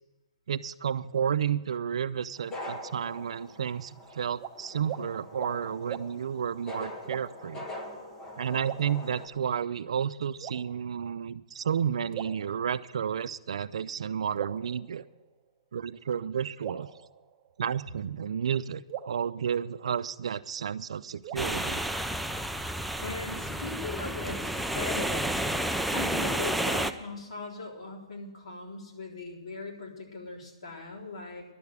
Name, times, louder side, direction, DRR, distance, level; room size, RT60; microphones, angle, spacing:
voice 1, 0.5-7.7 8.4-15.0 15.7-16.9 17.6-21.8, right 8 dB, 70° right, 14 dB, 0.5 m, -31 dB
sound 1, 2.4-9.3, left 1 dB, 15° left, 1.2 m, -43 dB
sound 2, 4.4-4.5 4.8-5.0 5.4-5.6 5.9-6.1 7.0-7.5 8.6-9.5 10.4-11.1 12.1-13.1 14.4-15.5 16.6-17.8 18.9-20.3 21.2-22.4, right 10 dB, 20° right, 0.9 m, -42 dB
sound 3, 21.4-26.9, right 1 dB, ahead, 0.3 m, -31 dB
voice 2, 22.8-25.4 25.9-31.4, left 3 dB, 70° left, -1 dB, 3.8 m, -39 dB
11.5 x 6.9 x 9.6 m, 1.2 s
hypercardioid pair, 165°, 3 cm